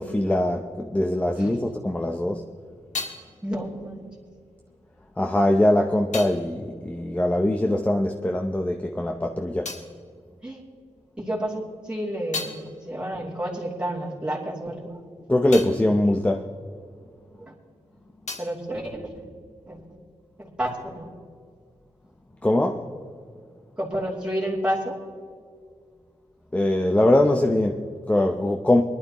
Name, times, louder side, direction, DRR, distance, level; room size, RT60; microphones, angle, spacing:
voice 1, 0.0-2.4 5.2-9.7 15.3-16.5 22.4-22.9 26.5-28.8, left 1 dB, 10° left, 0.6 m, -22 dB
sound 1, 2.2-8.1 8.4-11.1 11.5-17.5 17.8-19.8, left 4 dB, 85° left, 1.6 m, -41 dB
voice 2, 3.4-4.1 10.4-10.6 11.2-15.0 17.4-17.5 18.4-19.2 19.7-20.0 20.4-21.1 23.8-25.0, right 1 dB, 10° right, 2.8 m, -30 dB
23.0 x 11.0 x 3.0 m
wide cardioid pair, 120°, 12 cm